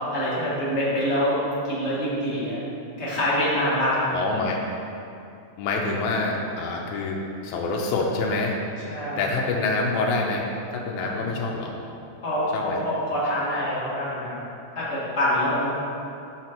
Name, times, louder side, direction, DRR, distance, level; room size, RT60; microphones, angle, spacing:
voice 1, 0.1-1.4 1.7-2.6 3.0-4.1 8.9-9.2 10.9-11.2 12.2-14.4 14.7-15.7, equal, 30° left, -9 dB, 1.4 m, -25 dB
voice 2, 4.1-4.6 5.6-7.2 7.4-8.6 8.9-11.7 12.5-12.8, left 3 dB, 85° left, -1 dB, 2.0 m, -26 dB
6.0 x 5.6 x 4.3 m, 2.7 s
omnidirectional pair, 3.4 m